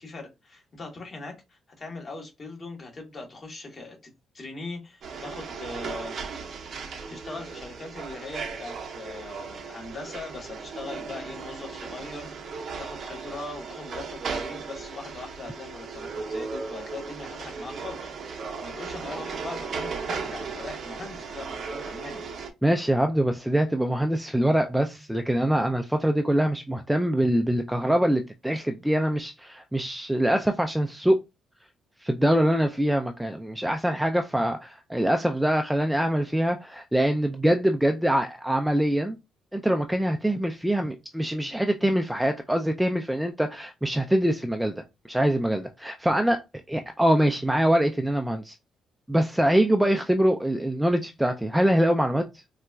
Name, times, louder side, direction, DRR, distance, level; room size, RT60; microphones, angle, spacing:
voice 1, 0.0-4.0 4.3-6.1 7.1-22.2, left 3 dB, 40° left, 1.2 m, -40 dB
sound 1, 5.0-22.5, right 5 dB, 60° right, 0.6 m, -36 dB
voice 2, 22.6-31.2 32.0-39.2 39.5-46.4 46.7-48.6 49.1-52.2, right 1 dB, 5° right, 0.3 m, -24 dB
3.9 x 2.3 x 2.3 m
cardioid pair, 90°, 0 cm